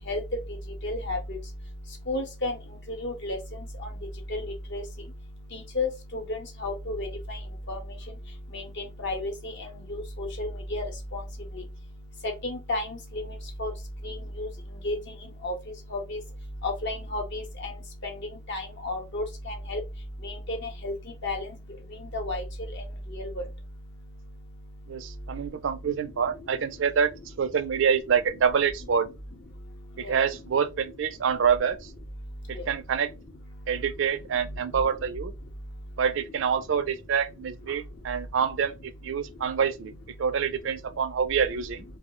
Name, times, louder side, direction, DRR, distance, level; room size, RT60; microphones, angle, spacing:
voice 1, 0.8-1.2 2.1-2.5 3.0-3.4 4.3-4.4 4.7-4.8 5.8-6.2 6.6-7.4 7.7-7.8 8.5-8.6 9.0-9.3 9.9-10.8 11.1-11.2 12.4-13.0 13.6-13.7 14.4-14.5 14.8-15.0 15.4-15.5 15.9-16.2 16.6-17.7 18.5-19.8 20.2-20.6 20.8-20.9 21.2-21.4 22.1-22.4 23.1-23.3, left 2 dB, 55° left, 0.7 m, -31 dB
voice 2, 24.9-27.1 27.4-29.1 30.0-31.9 32.5-33.1 33.7-35.3 36.0-39.9 40.2-41.8, right 7 dB, 60° right, 0.3 m, -26 dB
2.3 x 2.0 x 2.9 m
head